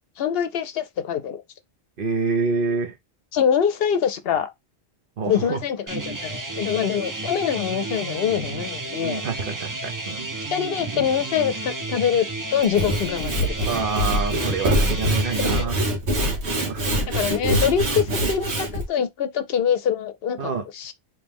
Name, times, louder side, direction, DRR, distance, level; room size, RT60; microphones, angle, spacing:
voice 1, 0.2-1.4 3.3-4.5 5.3-9.2 10.5-12.3 12.5-13.9 15.4-15.5 17.1-20.9, left 8 dB, 70° left, 0.7 m, -24 dB
voice 2, 2.0-2.9 5.2-5.6 9.0-10.3 13.7-15.8 16.5-17.3 20.4-20.6, right 4 dB, 60° right, 0.9 m, -27 dB
sound 1, 5.9-15.6, right 2 dB, 30° right, 0.4 m, -32 dB
Sawing / Wood, 12.6-18.8, equal, 90° right, 1.4 m, -24 dB
3.1 x 3.0 x 3.4 m
omnidirectional pair, 1.1 m